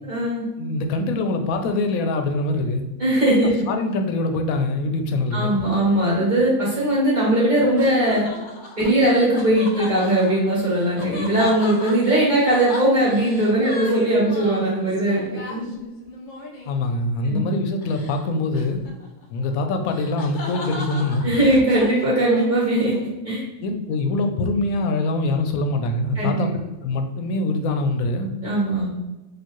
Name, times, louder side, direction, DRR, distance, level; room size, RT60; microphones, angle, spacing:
voice 1, 0.0-0.4 3.0-3.5 5.3-8.2 8.8-15.2 15.5-15.7 17.2-17.4 21.2-22.9 23.2-23.4 26.2-26.4 28.4-28.9, right 1 dB, 35° right, -7 dB, 1.2 m, -19 dB
voice 2, 0.6-2.8 3.7-5.6 16.7-18.8 19.3-21.4 23.6-28.3, left 2 dB, 80° left, 6 dB, 1.0 m, -24 dB
sound 1, 7.5-16.9 17.8-18.2 18.5-23.1, left 3 dB, 60° left, 0.5 m, -37 dB
4.4 x 2.6 x 3.0 m, 1.1 s
omnidirectional pair, 1.5 m